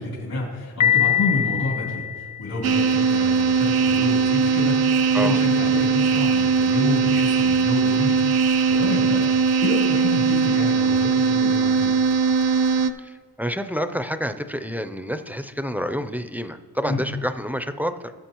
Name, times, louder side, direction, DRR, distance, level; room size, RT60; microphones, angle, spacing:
voice 1, 0.0-9.3 9.6-11.9 16.8-17.0, left 2 dB, 75° left, -6 dB, 3.0 m, -29 dB
Piano, 0.8-2.8, left 10 dB, 55° left, 0.7 m, -23 dB
sound 1, 2.6-12.9, right 5 dB, 75° right, 0.6 m, -20 dB
voice 2, 13.0-18.0, equal, 5° right, 9 dB, 0.4 m, -28 dB
18.0 x 7.7 x 2.9 m, 1.5 s
wide cardioid pair, 135°, 37 cm